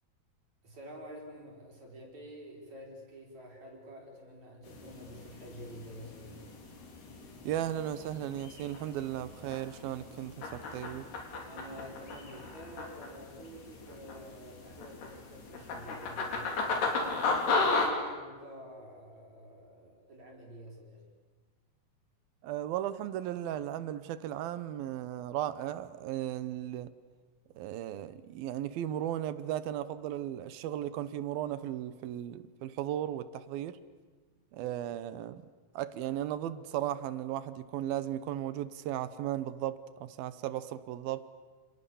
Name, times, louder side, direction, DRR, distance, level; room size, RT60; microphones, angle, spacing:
voice 1, 0.6-6.5 11.5-21.0, equal, 45° right, 5.9 m, -49 dB
sound 1, 4.7-17.9, left 3 dB, 90° left, 5.6 m, -36 dB
voice 2, 7.4-11.1 22.4-26.9 27.6-33.8 34.5-35.4 35.8-41.2, right 12 dB, 75° right, 2.7 m, -36 dB
28.5 x 28.5 x 7.1 m
omnidirectional pair, 4.5 m